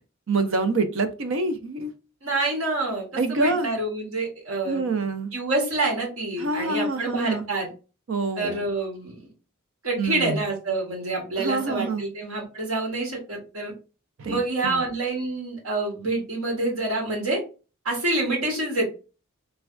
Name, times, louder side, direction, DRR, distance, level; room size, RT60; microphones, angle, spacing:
voice 1, 0.3-1.9 3.2-3.7 4.7-5.3 6.4-7.5 8.1-8.7 10.0-10.4 11.4-12.0 14.2-14.8, right 3 dB, 60° right, 10 dB, 0.5 m, -26 dB
voice 2, 2.2-4.8 5.3-7.7 8.4-9.3 9.8-13.7 14.3-17.4 17.8-18.9, right 2 dB, 80° right, 0 dB, 1.3 m, -27 dB
3.2 x 2.2 x 2.4 m, 0.33 s
head